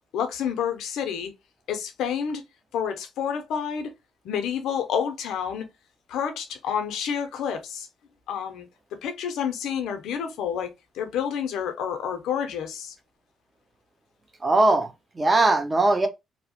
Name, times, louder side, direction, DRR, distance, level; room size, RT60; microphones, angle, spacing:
voice 1, 0.1-1.3 1.7-2.4 2.7-3.9 4.2-5.7 6.1-7.9 8.3-8.7 9.0-12.9, left 8 dB, 80° left, 0.5 m, -29 dB
voice 2, 14.4-16.1, right 2 dB, 25° right, 0.6 m, -20 dB
2.7 x 2.0 x 2.8 m
cardioid pair, 90°, 0 cm